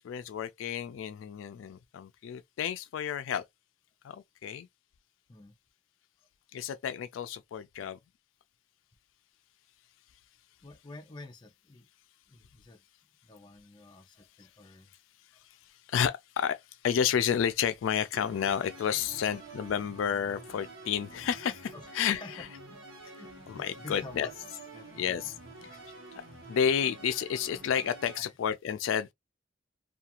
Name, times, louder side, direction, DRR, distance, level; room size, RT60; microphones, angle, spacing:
voice 1, 0.0-3.4 4.0-4.7 6.5-8.0 15.4-22.5 23.5-24.3 24.9-25.4 25.6-25.8 26.5-29.1, left 8 dB, 85° left, 0.3 m, -31 dB
voice 2, 10.6-11.9 12.3-12.8 13.2-14.9 21.7-21.9 22.2-22.4 22.7-22.8 23.1-24.3 24.7-24.9 28.1-28.3, left 2 dB, 25° left, 0.5 m, -48 dB
sound 1, 18.1-28.2, right 2 dB, 80° right, 1.0 m, -48 dB
2.4 x 2.3 x 2.8 m
head